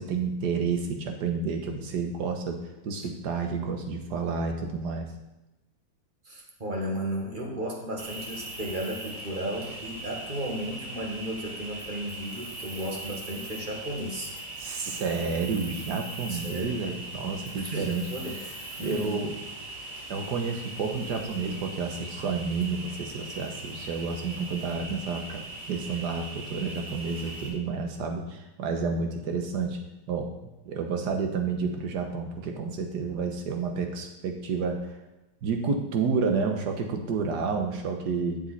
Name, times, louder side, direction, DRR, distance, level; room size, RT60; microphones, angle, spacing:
voice 1, 0.0-5.1 14.6-19.3 20.1-29.8 30.1-30.3 30.6-35.0 35.4-38.4, right 5 dB, 55° right, 4 dB, 1.6 m, -30 dB
voice 2, 6.2-14.3 14.7-14.9 16.3-16.8 17.5-18.4 18.8-19.3, equal, 25° right, -1 dB, 1.5 m, -34 dB
Cricket, 8.0-27.5, right 2 dB, 80° right, 2.8 m, -40 dB
10.5 x 7.1 x 4.2 m, 0.98 s
omnidirectional pair, 2.3 m